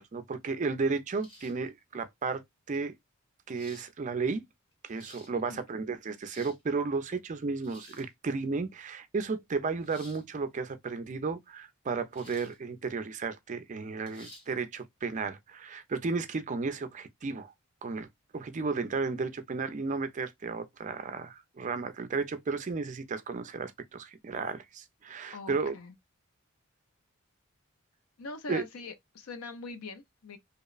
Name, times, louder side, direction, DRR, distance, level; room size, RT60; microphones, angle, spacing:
voice 1, 0.0-2.9 3.5-4.4 4.8-17.5 17.8-18.1 18.3-25.7 28.5-28.6, right 4 dB, 35° right, 0.3 m, -33 dB
sound 1, 1.2-1.7 2.7-2.8 3.5-3.9 4.7-5.3 6.0-6.6 7.6-8.1 9.8-10.2 12.1-12.6 13.0-13.1 14.1-14.5, left 1 dB, 25° left, 0.9 m, -53 dB
voice 2, 25.3-25.9 28.2-30.4, left 3 dB, 85° left, 0.6 m, -42 dB
2.8 x 2.0 x 2.3 m
head